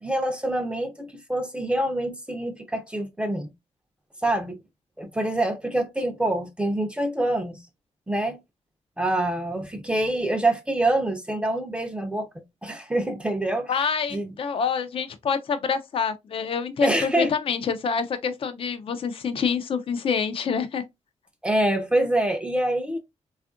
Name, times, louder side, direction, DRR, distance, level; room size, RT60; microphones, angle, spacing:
voice 1, 0.0-3.5 4.2-4.6 5.0-7.6 8.1-8.4 9.0-13.7 14.1-14.3 16.8-17.3 21.4-23.0, right 1 dB, 10° right, 0.5 m, -26 dB
voice 2, 13.7-20.8, left 6 dB, 50° left, 0.4 m, -27 dB
3.4 x 2.4 x 2.4 m
cardioid pair, 100°, 12 cm